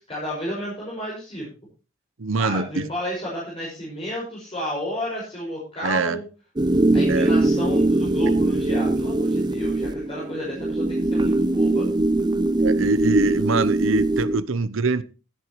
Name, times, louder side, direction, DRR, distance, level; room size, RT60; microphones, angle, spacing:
voice 1, 0.1-1.5 2.4-6.2 6.9-11.9, equal, 30° left, 5.6 m, -32 dB
voice 2, 2.2-2.9 5.8-6.2 7.1-7.3 12.6-15.0, right 3 dB, 75° right, 0.8 m, -23 dB
sound 1, 6.6-14.4, right 2 dB, 20° right, 0.5 m, -21 dB
15.5 x 10.0 x 3.1 m
head